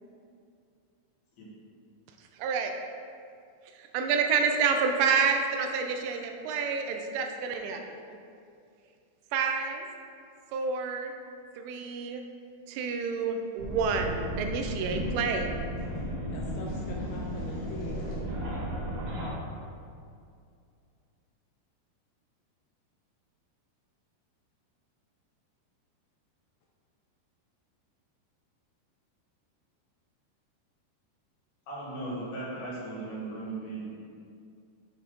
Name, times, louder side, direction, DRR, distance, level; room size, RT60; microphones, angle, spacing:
voice 1, 2.4-2.7 3.9-7.8 9.3-9.8 10.5-11.1 11.6-12.2 12.7-15.6, right 5 dB, 85° right, 4 dB, 2.8 m, -28 dB
sound 1, 13.6-19.3, right 1 dB, 65° right, 2.9 m, -34 dB
voice 2, 16.3-18.2, left 3 dB, 80° left, -2 dB, 2.3 m, -42 dB
voice 3, 31.7-34.0, right 2 dB, 65° left, -7 dB, 3.2 m, -37 dB
8.1 x 4.4 x 3.9 m, 2.4 s
omnidirectional pair, 4.9 m